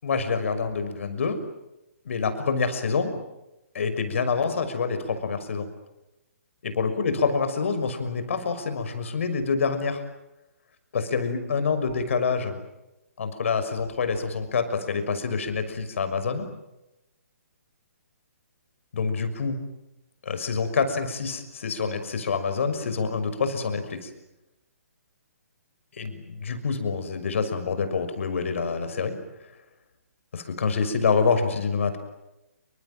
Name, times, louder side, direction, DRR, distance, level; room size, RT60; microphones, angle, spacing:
voice 1, 0.0-1.4 2.0-3.1 3.7-5.7 6.6-10.0 10.9-12.6 13.2-16.5 18.9-19.6 20.2-24.1 26.0-29.2 30.3-32.0, left 5 dB, 60° left, 9 dB, 6.2 m, -26 dB
29.0 x 25.5 x 7.7 m, 0.92 s
figure-of-eight pair, 135°, 8 cm